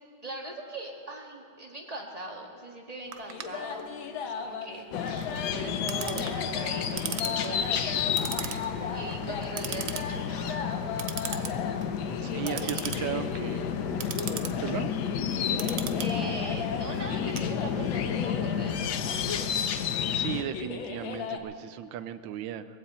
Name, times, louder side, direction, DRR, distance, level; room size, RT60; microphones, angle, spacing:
voice 1, 0.2-8.1 8.4-10.7 12.2-12.7 16.0-18.8, right 1 dB, 20° right, 0 dB, 1.6 m, -40 dB
Clock, 3.1-18.1, right 8 dB, 60° right, 0.9 m, -40 dB
sound 1, 3.3-21.4, left 6 dB, 85° left, 1.8 m, -37 dB
sound 2, 4.9-20.4, left 8 dB, 65° left, 1.2 m, -31 dB
voice 2, 12.2-13.6 14.6-14.9 20.1-22.7, right 10 dB, 80° right, 12 dB, 1.4 m, -36 dB
21.0 x 15.5 x 4.3 m, 2.5 s
omnidirectional pair, 2.1 m